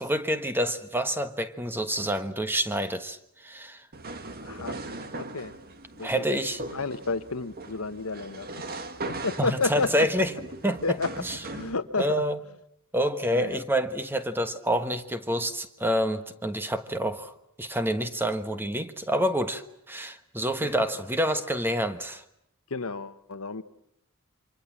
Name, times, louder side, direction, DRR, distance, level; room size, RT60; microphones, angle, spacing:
voice 1, 0.0-3.9 6.0-6.6 9.4-10.3 10.6-11.0 11.2-11.4 12.0-12.4 12.9-17.3 17.6-22.2, equal, 10° right, 1.3 m, -28 dB
sound 1, 3.9-11.7, right 2 dB, 45° right, 1.7 m, -39 dB
voice 2, 4.4-4.8 5.1-5.6 5.9-6.4 6.7-8.5 9.1-10.2 10.8-11.2 11.5-12.2 13.3-13.6 20.6-20.7 22.7-23.6, left 3 dB, 75° left, 1.2 m, -31 dB
28.5 x 25.5 x 7.4 m
head